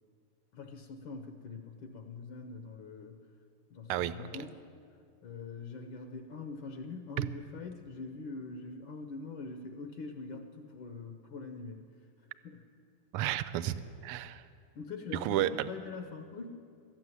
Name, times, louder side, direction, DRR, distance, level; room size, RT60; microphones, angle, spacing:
voice 1, 0.5-3.2 3.7-4.7 5.2-11.8 12.4-12.7 14.7-16.5, left 4 dB, 70° left, 5 dB, 1.5 m, -43 dB
voice 2, 3.9-4.3 7.2-7.3 13.1-13.8 14.0-14.4 15.1-15.7, right 13 dB, 85° right, 14 dB, 1.5 m, -31 dB
13.0 x 7.7 x 9.6 m, 2.4 s
omnidirectional pair, 2.4 m